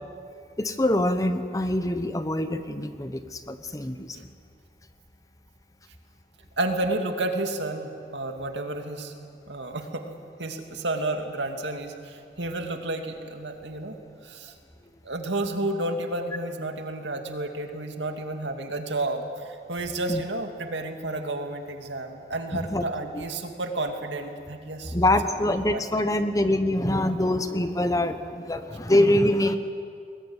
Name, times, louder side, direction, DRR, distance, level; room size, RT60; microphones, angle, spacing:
voice 1, 0.6-4.3 20.1-20.2 22.5-22.8 24.9-29.6, left 1 dB, 20° left, 9 dB, 1.0 m, -24 dB
voice 2, 6.6-9.1 9.5-10.1 10.4-14.0 14.2-14.5 15.0-24.9 25.7-25.8 26.1-26.2, right 2 dB, 80° right, 4 dB, 2.4 m, -31 dB
21.0 x 20.0 x 9.7 m, 2.4 s
head